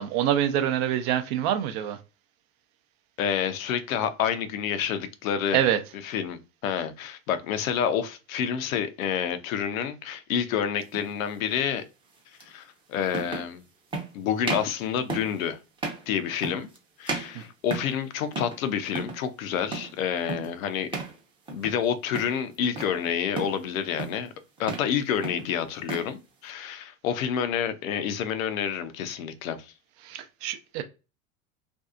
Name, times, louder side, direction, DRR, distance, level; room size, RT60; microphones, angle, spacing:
voice 1, 0.0-2.0 5.5-5.8 17.3-17.4 30.0-30.8, right 10 dB, 55° right, 0.6 m, -26 dB
voice 2, 3.2-5.6 6.0-11.8 12.5-13.6 14.1-15.6 16.1-16.7 17.0-20.9 21.5-24.3 24.6-29.7, left 8 dB, 80° left, 0.6 m, -28 dB
sound 1, 10.9-11.1 12.4-12.5 13.1-13.5 13.9-14.1 14.4-14.8 15.1-15.4 15.8-16.1 16.4-16.8 17.1-18.0 18.3-18.6 18.9-19.2 19.7-20.0 20.3-20.6 20.9-21.2 21.5-21.8 22.1-23.0 23.4-23.6 24.0-24.3 24.6-24.9 25.2-26.1, right 3 dB, 15° right, 0.6 m, -34 dB
2.6 x 2.3 x 2.4 m
hypercardioid pair, 95°, 40 cm